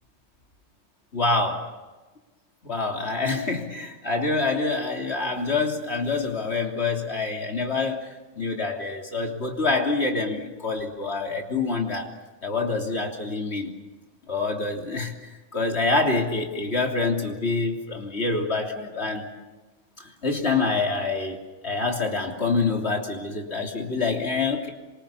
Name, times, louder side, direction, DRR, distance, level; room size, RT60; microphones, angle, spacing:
voice 1, 1.1-1.7 2.6-12.1 12.4-13.7 14.3-19.3 20.0-24.7, left 3 dB, 55° left, 1 dB, 3.5 m, -26 dB
27.5 x 24.5 x 7.1 m, 1.2 s
omnidirectional pair, 1.3 m